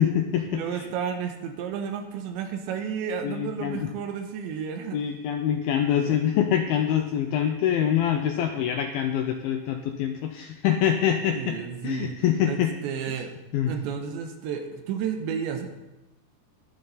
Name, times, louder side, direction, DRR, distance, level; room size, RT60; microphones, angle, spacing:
voice 1, 0.0-0.9 3.2-3.9 4.9-11.6 11.8-12.7 13.5-13.7, left 9 dB, 85° left, 5 dB, 2.1 m, -25 dB
voice 2, 0.5-5.0 5.9-6.2 11.3-12.2 12.4-13.3 13.7-15.7, right 7 dB, 85° right, 5 dB, 3.4 m, -32 dB
20.5 x 7.2 x 4.1 m, 1.0 s
omnidirectional pair, 5.1 m